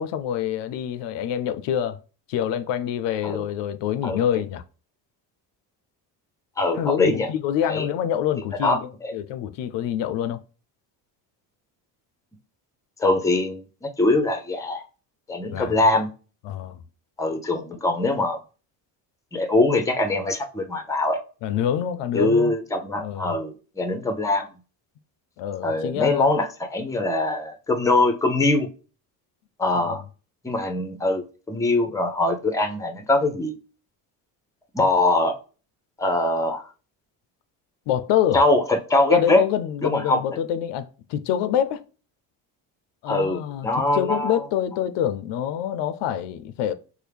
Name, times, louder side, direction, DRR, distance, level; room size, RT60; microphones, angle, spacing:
voice 1, 0.0-2.0 2.3-4.6 6.7-10.4 15.5-15.8 16.4-16.8 21.4-22.5 23.0-23.3 25.4-26.3 29.9-30.0 37.9-38.4 39.1-41.8 43.0-43.7 43.9-46.7, left 10 dB, 75° left, 0.5 m, -26 dB
voice 2, 6.6-7.3 7.6-7.9 8.6-9.1 13.0-14.8 15.3-16.1 17.2-18.4 19.3-21.2 22.1-24.5 25.6-28.7 29.6-30.0 30.4-33.5 34.7-35.3 36.0-36.6 38.3-39.4 39.8-40.2 43.1-44.5, left 2 dB, 10° left, 0.6 m, -22 dB
4.4 x 2.1 x 3.4 m
cardioid pair, 90°, 43 cm